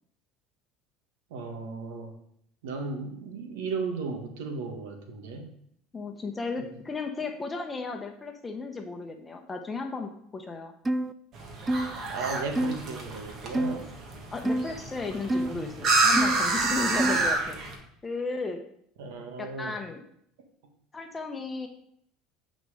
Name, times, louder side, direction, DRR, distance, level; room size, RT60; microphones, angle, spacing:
voice 1, 1.3-2.1 2.6-5.5 6.6-6.7 12.1-13.9 15.5-15.7 17.1-17.3 19.0-19.8, right 4 dB, 85° right, 4 dB, 1.3 m, -35 dB
voice 2, 5.9-10.7 14.3-17.8 18.0-18.6 19.4-20.0 20.9-21.7, left 4 dB, 20° left, 4 dB, 0.8 m, -35 dB
sound 1, 10.9-11.1 11.7-11.9 12.6-12.8 13.5-13.8 14.5-14.7 15.3-15.5 16.2-16.4 17.0-17.3, right 1 dB, 15° right, 0.3 m, -27 dB
sound 2, 11.3-17.8, right 3 dB, 45° right, 1.5 m, -28 dB
8.1 x 4.0 x 4.8 m, 0.69 s
supercardioid pair, 105°, 0 cm